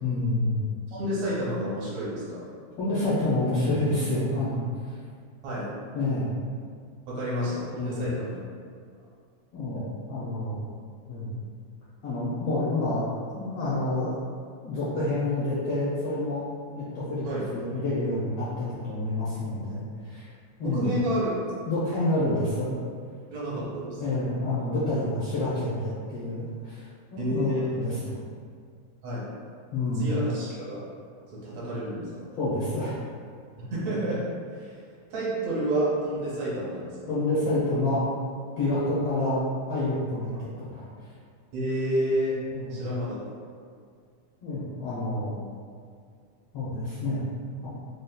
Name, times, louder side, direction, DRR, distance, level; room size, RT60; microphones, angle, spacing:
voice 1, 0.0-0.7 2.8-4.6 5.9-6.4 7.5-8.0 9.5-10.7 11.1-11.4 12.0-13.0 13.3-14.1 14.6-16.4 16.7-17.2 17.5-20.2 20.6-21.0 21.7-22.7 23.5-23.6 24.0-26.8 27.1-28.2 29.7-30.1 32.4-33.0 37.1-38.0 38.6-39.4 39.7-40.8 42.5-42.8 44.4-45.4 46.5-47.2 47.6-47.7, left 2 dB, 85° left, -10 dB, 1.3 m, -28 dB
voice 2, 0.9-2.5 5.4-5.7 7.1-8.4 17.3-17.4 20.6-21.4 23.3-24.0 27.2-27.7 29.0-29.3 30.0-30.8 31.3-32.3 33.6-34.2 34.6-34.8 35.1-37.2 41.5-42.4 42.7-43.2, equal, 75° right, -8 dB, 2.1 m, -29 dB
5.2 x 2.0 x 2.2 m, 2.1 s
omnidirectional pair, 3.3 m